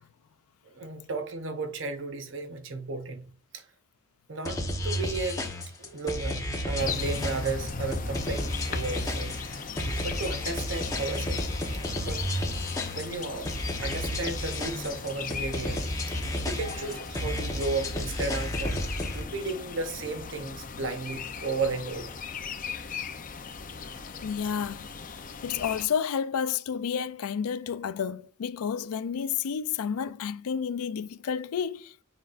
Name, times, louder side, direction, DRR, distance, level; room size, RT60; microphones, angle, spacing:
voice 1, 0.6-3.7 4.3-5.4 5.8-9.4 10.0-11.4 12.0-12.2 13.0-13.5 13.8-16.2 16.4-22.1, right 3 dB, 55° right, 0.7 m, -34 dB
sound 1, 4.4-19.2, left 1 dB, 15° left, 0.9 m, -32 dB
sound 2, 6.8-25.9, left 5 dB, 35° left, 0.5 m, -38 dB
voice 2, 24.2-24.9 25.4-32.0, left 7 dB, 85° left, 0.4 m, -30 dB
8.0 x 5.3 x 2.5 m
head